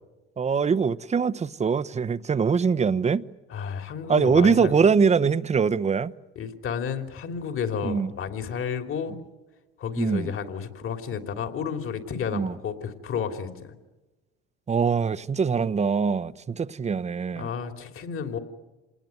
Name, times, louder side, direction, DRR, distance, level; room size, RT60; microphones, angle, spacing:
voice 1, 0.4-3.3 4.1-6.1 7.8-8.1 10.0-10.3 12.3-12.5 14.7-17.5, right 5 dB, 25° right, 0.9 m, -23 dB
voice 2, 3.5-4.7 6.3-9.2 9.8-13.7 17.3-18.4, left 7 dB, 45° left, 3.1 m, -31 dB
27.0 x 19.5 x 9.5 m
supercardioid pair, 90°, 29 cm